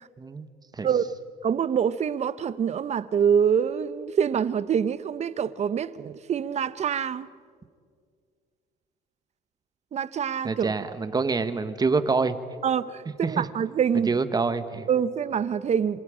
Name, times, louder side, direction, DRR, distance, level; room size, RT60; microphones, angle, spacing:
voice 1, 0.2-0.5 0.7-1.0 10.4-12.4 13.2-13.5 13.9-14.9, right 4 dB, 25° right, 1.2 m, -26 dB
voice 2, 1.4-7.3 9.9-10.7 12.6-14.1 14.9-16.0, right 7 dB, 40° right, 0.8 m, -25 dB
27.5 x 26.0 x 5.0 m
cardioid pair, 110°, 17 cm